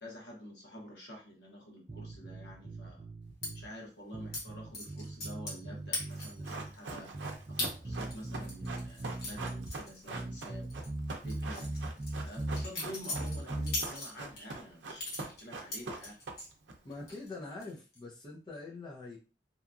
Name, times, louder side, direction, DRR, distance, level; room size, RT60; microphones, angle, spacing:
voice 1, 0.0-3.1 3.5-7.2 7.5-10.7 11.2-11.7 12.2-16.2, equal, 80° left, -2 dB, 1.1 m, -48 dB
sound 1, 1.9-3.7 4.1-6.7 7.1-9.7 10.1-12.7 13.1-13.8, right 1 dB, 30° right, 0.5 m, -40 dB
sound 2, 3.4-3.5 4.3-4.4 4.7-5.6 5.9-6.5 6.9-7.0 7.6-7.7 8.1-10.4 10.7-10.9 11.3-14.4 15.0-16.5 16.9-17.3 17.6-18.0, left 1 dB, 60° left, 1.1 m, -39 dB
Run, 6.1-16.7 17.0-17.1, right 3 dB, 90° right, 0.5 m, -43 dB
voice 2, 16.8-19.2, left 3 dB, 25° left, -4 dB, 0.5 m, -44 dB
2.8 x 2.3 x 2.5 m, 0.33 s
head